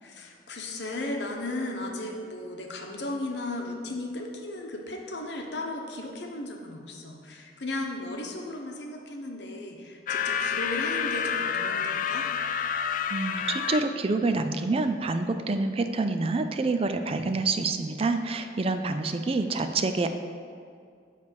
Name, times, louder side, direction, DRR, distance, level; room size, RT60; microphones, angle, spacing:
voice 1, 0.0-12.3, left 2 dB, 70° left, 1 dB, 1.0 m, -35 dB
sound 1, 10.1-13.8, left 7 dB, 45° left, 0.3 m, -29 dB
voice 2, 13.1-20.1, right 3 dB, 30° right, 8 dB, 0.4 m, -27 dB
9.6 x 3.3 x 6.7 m, 2.3 s
head